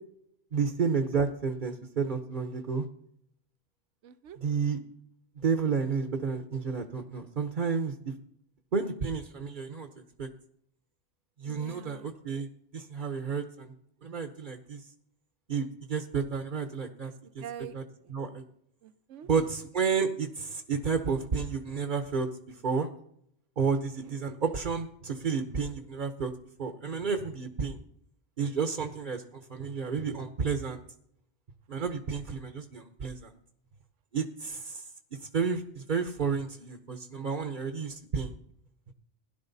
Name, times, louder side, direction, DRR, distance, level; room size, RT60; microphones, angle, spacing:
voice 1, 0.5-2.8 4.4-4.8 5.4-7.9 8.7-9.9 10.2-10.3 11.4-12.5 12.7-13.7 14.0-14.8 15.5-17.4 17.7-17.8 18.1-18.4 19.3-22.3 22.6-22.9 23.6-26.3 26.6-27.8 28.4-30.8 31.7-33.3 34.1-34.8 35.3-38.3, right 5 dB, 45° right, 6 dB, 1.0 m, -31 dB
voice 2, 4.0-4.4 11.5-12.1 17.0-17.1 17.4-17.8 18.0-18.1 18.8-19.3 24.0-24.1, right 10 dB, 80° right, 12 dB, 1.1 m, -45 dB
17.0 x 11.0 x 4.0 m, 0.70 s
omnidirectional pair, 1.2 m